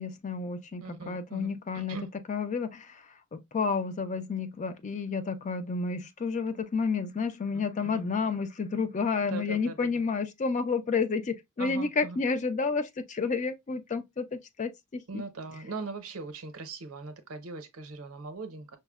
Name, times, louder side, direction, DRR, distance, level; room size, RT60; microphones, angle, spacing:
voice 1, 0.0-2.0 2.3-15.2, left 4 dB, 35° left, 0.4 m, -31 dB
voice 2, 0.8-2.1 7.5-8.0 9.3-9.9 11.6-12.2 15.1-18.8, right 4 dB, 65° right, 0.7 m, -40 dB
5.4 x 2.0 x 2.3 m
head